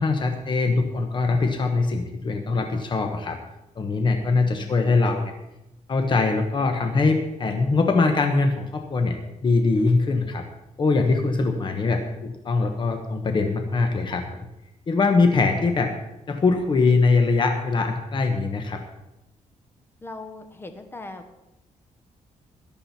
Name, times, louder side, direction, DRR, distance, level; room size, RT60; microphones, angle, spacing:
voice 1, 0.0-3.4 3.8-5.3 5.9-10.4 10.8-14.5 14.9-15.9 16.3-18.8, left 3 dB, 35° left, 5 dB, 1.2 m, -22 dB
voice 2, 4.3-5.1 11.4-12.1 15.3-15.7 20.0-21.4, left 2 dB, 15° left, 7 dB, 1.2 m, -42 dB
14.0 x 11.0 x 4.3 m, 0.93 s
cardioid pair, 135°, 13 cm